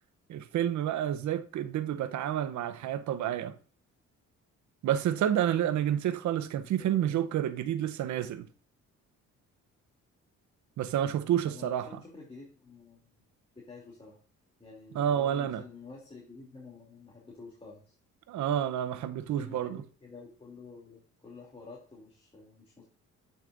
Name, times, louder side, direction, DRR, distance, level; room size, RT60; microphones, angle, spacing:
voice 1, 0.3-3.6 4.8-8.5 10.8-11.9 14.9-15.6 18.3-19.8, right 10 dB, 70° right, 0.8 m, -29 dB
voice 2, 6.8-7.1 11.4-13.2 13.5-14.2 14.6-17.9 19.3-22.8, left 3 dB, 20° left, 2.8 m, -49 dB
8.5 x 6.5 x 2.6 m
cardioid pair, 90°, 30 cm